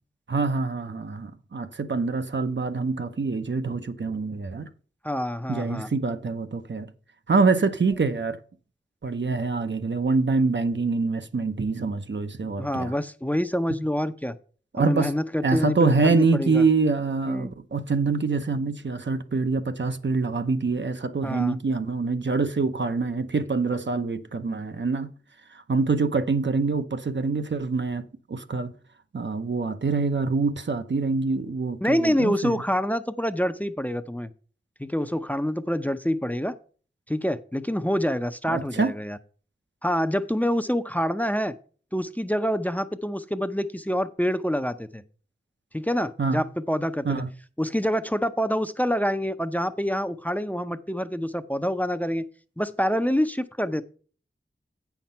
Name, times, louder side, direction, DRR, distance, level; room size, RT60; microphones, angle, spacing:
voice 1, 0.3-4.7 5.5-6.9 7.3-8.4 9.0-12.9 14.7-15.1 15.4-25.1 25.5-28.7 29.1-32.6 38.5-38.9 46.2-46.4 47.0-47.3, right 4 dB, 60° right, 0.7 m, -25 dB
voice 2, 5.0-5.9 12.6-14.4 14.8-16.6 17.3-17.5 21.2-21.6 31.8-34.3 34.8-36.5 37.1-39.2 39.8-41.5 41.9-45.0 45.7-47.2 47.6-52.2 52.6-53.8, equal, 10° left, 0.6 m, -26 dB
8.4 x 5.9 x 5.4 m
wide cardioid pair, 45°, 21 cm